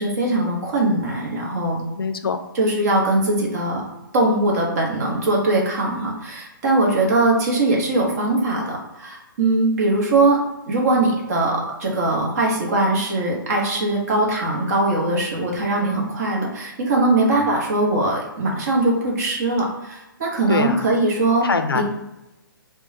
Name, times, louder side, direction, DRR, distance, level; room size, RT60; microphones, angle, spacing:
voice 1, 0.0-1.8 2.5-3.8 4.1-10.4 10.7-21.5 21.7-21.8, right 2 dB, 45° right, -2 dB, 1.0 m, -21 dB
voice 2, 1.9-2.4 20.5-20.8 21.4-21.8, left 5 dB, 85° left, 8 dB, 0.5 m, -23 dB
3.6 x 2.2 x 2.7 m, 0.94 s
hypercardioid pair, 140°, 12 cm